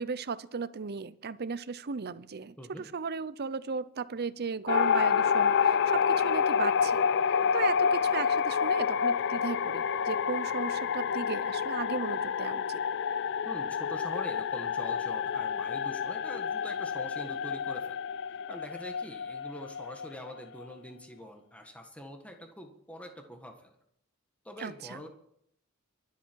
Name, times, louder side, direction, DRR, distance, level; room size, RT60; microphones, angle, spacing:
voice 1, 0.0-12.8 24.6-25.0, right 5 dB, 50° right, 15 dB, 0.6 m, -36 dB
sound 1, 4.7-20.6, left 7 dB, 55° left, 0.4 m, -28 dB
voice 2, 13.4-18.0 18.3-23.8 24.4-25.1, equal, 5° left, 4 dB, 1.6 m, -44 dB
23.5 x 8.3 x 4.7 m, 0.69 s
head